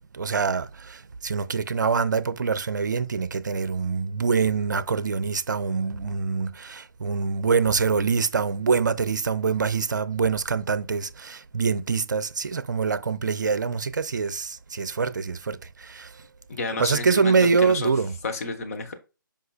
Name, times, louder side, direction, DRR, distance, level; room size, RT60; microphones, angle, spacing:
voice 1, 0.1-16.2 16.8-18.2, right 5 dB, 55° right, 0.5 m, -25 dB
voice 2, 16.5-17.9 18.2-18.9, left 3 dB, 45° left, 1.3 m, -31 dB
7.7 x 5.0 x 2.4 m
figure-of-eight pair, 140°, 11 cm